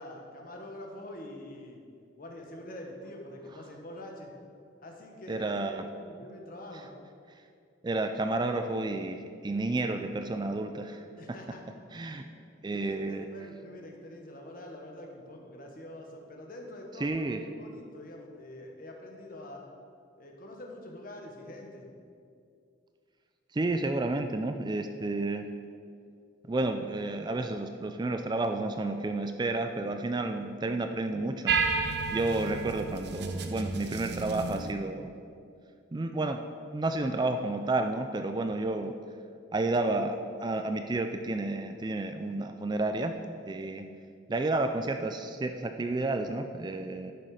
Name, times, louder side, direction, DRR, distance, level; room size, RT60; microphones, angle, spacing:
voice 1, 0.0-1.8 2.2-4.3 4.8-6.9 11.1-11.6 12.1-12.3 12.7-17.3 17.6-19.7 20.2-21.9, left 1 dB, 45° left, 1 dB, 1.3 m, -45 dB
voice 2, 5.3-5.8 7.8-11.0 11.9-12.3 12.6-13.3 17.0-17.4 23.5-25.5 26.5-31.5 32.1-35.1 35.9-36.4 36.7-38.9 39.5-43.2 43.5-43.9 44.3-47.1, right 2 dB, 20° right, 7 dB, 0.3 m, -31 dB
sound 1, 31.5-34.7, right 4 dB, 60° right, 0.7 m, -31 dB
11.0 x 6.3 x 4.9 m, 2.4 s
head